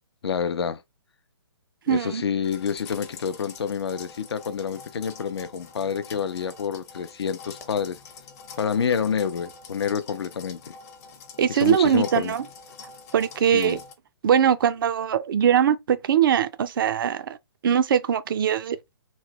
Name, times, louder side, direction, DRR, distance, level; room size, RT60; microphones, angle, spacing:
voice 1, 0.2-0.8 1.9-8.0 8.6-10.7 11.5-12.3 13.5-13.8, left 7 dB, 75° left, 0.5 m, -28 dB
voice 2, 1.9-2.2 11.4-12.5 13.1-13.8 14.2-17.4 17.6-18.8, right 9 dB, 55° right, 0.5 m, -21 dB
sound 1, 2.4-13.9, left 5 dB, 40° left, 0.7 m, -45 dB
3.0 x 2.2 x 2.9 m
hypercardioid pair, 145°, 13 cm